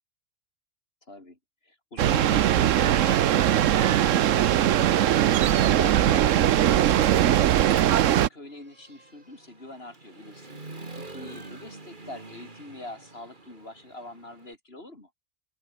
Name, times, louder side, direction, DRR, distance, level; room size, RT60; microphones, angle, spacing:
voice 1, 1.1-4.9 5.2-7.1 7.9-10.6 10.9-15.1, left 2 dB, 45° left, 4.8 m, -43 dB
sound 1, 2.0-8.3, right 11 dB, 70° right, 1.1 m, -20 dB
Human voice / Motorcycle, 3.2-3.3 3.8-5.6 5.9-14.5, right 2 dB, 35° right, 2.8 m, -47 dB
open air
omnidirectional pair, 1.4 m